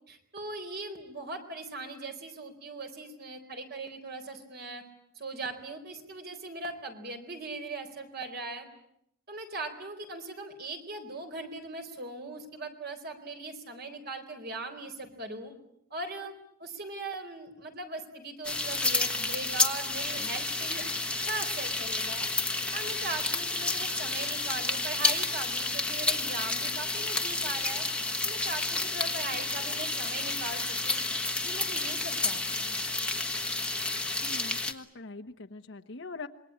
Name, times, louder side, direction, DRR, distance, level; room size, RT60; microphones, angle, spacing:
voice 1, 0.1-4.8 5.2-8.7 9.3-15.5 15.9-16.3 16.6-20.8 21.2-22.3 22.7-31.0 31.4-32.8, right 3 dB, 50° right, 6 dB, 4.3 m, -39 dB
sound 1, 18.4-34.7, left 3 dB, 5° left, 1.4 m, -30 dB
voice 2, 34.2-36.3, left 3 dB, 60° left, 5 dB, 1.1 m, -43 dB
27.0 x 22.0 x 8.7 m, 0.75 s
head